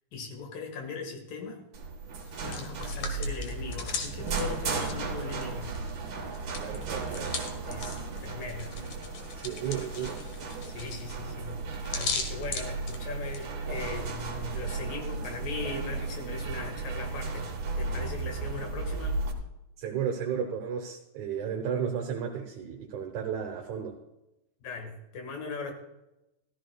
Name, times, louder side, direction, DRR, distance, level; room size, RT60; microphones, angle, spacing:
voice 1, 0.1-1.6 2.4-5.7 7.7-8.8 10.6-11.6 11.9-17.5 17.8-19.2 24.6-25.7, left 4 dB, 85° left, 4 dB, 3.4 m, -39 dB
sound 1, 1.7-19.3, right 3 dB, 50° right, 1.5 m, -35 dB
Hands, 2.2-5.9 6.2-13.5, left 5 dB, 60° left, 2.1 m, -39 dB
voice 2, 6.6-7.4 9.4-10.2 19.8-24.0, right 7 dB, 70° right, 1 dB, 2.3 m, -33 dB
15.0 x 14.0 x 2.3 m, 0.93 s
omnidirectional pair, 3.7 m